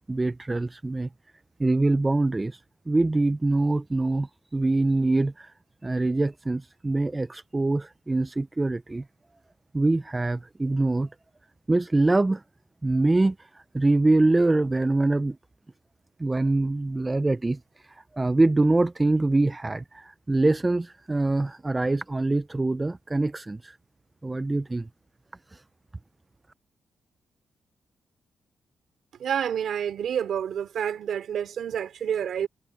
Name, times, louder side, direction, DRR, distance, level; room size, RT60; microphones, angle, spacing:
voice 1, 0.1-1.1 1.6-5.5 5.8-9.0 9.7-11.1 11.7-12.4 12.8-13.5 13.7-15.4 16.2-17.6 18.1-23.8 24.2-24.9 25.5-25.6, right 2 dB, 15° right, 0.3 m, -24 dB
voice 2, 29.2-32.5, right 8 dB, 60° right, 2.8 m, -28 dB
wide cardioid pair, 175°, 0 cm